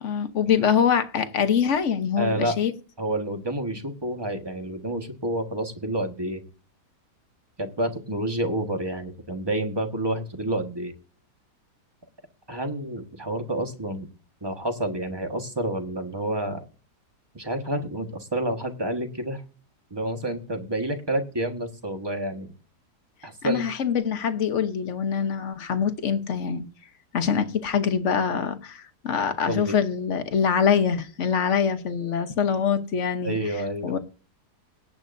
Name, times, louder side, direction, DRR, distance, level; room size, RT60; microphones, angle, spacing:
voice 1, 0.0-2.7 23.4-26.6 27.1-33.4 33.8-34.0, left 7 dB, 50° left, 1.2 m, -24 dB
voice 2, 2.2-2.6 3.0-6.4 7.6-10.9 12.5-14.1 14.4-16.6 17.3-19.4 19.9-22.5 23.2-23.6 29.5-29.7 33.2-34.0, right 1 dB, 15° right, 1.4 m, -29 dB
18.0 x 9.3 x 2.6 m
omnidirectional pair, 1.8 m